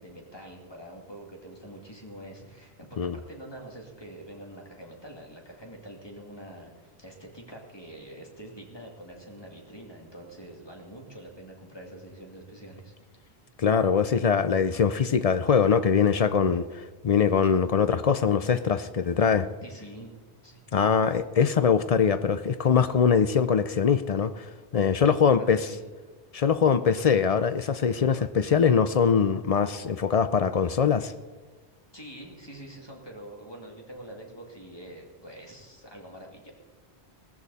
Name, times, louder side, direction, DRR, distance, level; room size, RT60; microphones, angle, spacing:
voice 1, 0.0-12.9 19.6-20.2 20.4-20.6 25.0-25.8 31.9-36.5, right 1 dB, 25° left, 2.5 m, -45 dB
voice 2, 13.6-19.5 20.7-25.6 26.3-31.1, left 6 dB, 45° left, 0.5 m, -23 dB
17.5 x 14.5 x 4.1 m
omnidirectional pair, 1.1 m